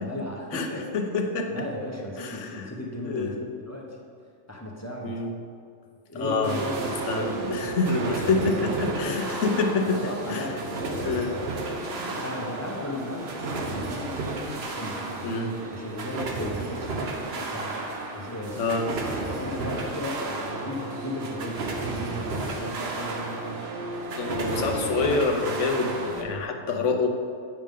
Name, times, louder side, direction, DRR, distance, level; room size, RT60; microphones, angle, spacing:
voice 1, 0.0-0.9 1.5-3.3 3.7-4.0 4.5-5.2 6.1-9.2 9.9-11.4 11.9-15.4 15.7-18.8 19.3-23.8 24.4-24.9, left 1 dB, 15° left, -2 dB, 0.8 m, -35 dB
voice 2, 0.9-1.5 2.2-2.7 3.0-3.4 5.0-5.3 6.1-10.5 11.0-11.3 15.2-15.6 18.5-18.9 19.3-19.4 24.2-27.1, left 3 dB, 70° left, 3 dB, 1.1 m, -27 dB
sound 1, 6.4-26.2, right 3 dB, 55° right, 1.0 m, -33 dB
8.7 x 5.6 x 3.6 m, 2.3 s
omnidirectional pair, 1.3 m